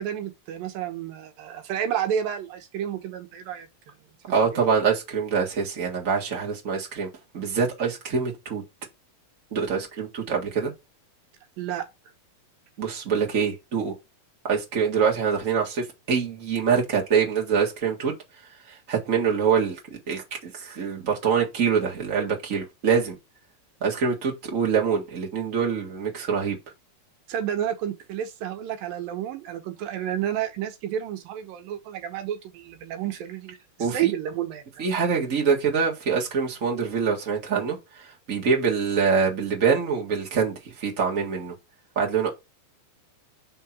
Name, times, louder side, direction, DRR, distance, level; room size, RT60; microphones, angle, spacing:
voice 1, 0.0-3.9 4.3-4.6 11.6-11.9 27.3-34.9, right 10 dB, 75° right, 2.5 m, -31 dB
voice 2, 4.3-7.1 7.3-8.6 9.5-10.7 12.8-13.9 14.5-18.1 18.9-19.8 20.1-23.2 23.8-26.6 33.8-34.1 34.8-37.8 38.3-41.5 41.9-42.3, right 6 dB, 40° right, 1.1 m, -24 dB
5.6 x 3.7 x 5.9 m
omnidirectional pair, 4.3 m